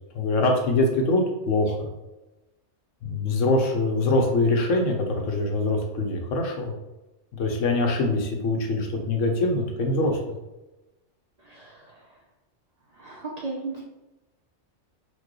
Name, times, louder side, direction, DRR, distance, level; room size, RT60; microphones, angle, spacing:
voice 1, 0.1-1.9 3.0-6.7 7.3-10.4, left 2 dB, 90° left, 2 dB, 1.1 m, -24 dB
voice 2, 11.4-12.0 12.9-13.8, right 3 dB, 45° right, -3 dB, 0.5 m, -36 dB
4.4 x 2.2 x 3.0 m, 1.0 s
omnidirectional pair, 1.2 m